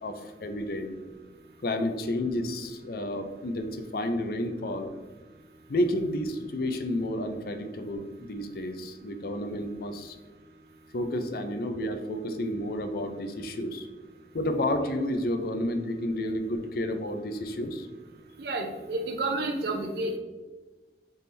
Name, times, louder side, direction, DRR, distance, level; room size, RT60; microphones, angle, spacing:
voice 1, 0.0-1.0 1.6-4.9 5.7-10.1 10.9-13.9 14.3-17.9, left 1 dB, 55° left, 7 dB, 0.5 m, -31 dB
voice 2, 18.4-20.2, right 2 dB, 60° right, 4 dB, 0.5 m, -30 dB
4.2 x 3.5 x 3.2 m, 1.2 s
head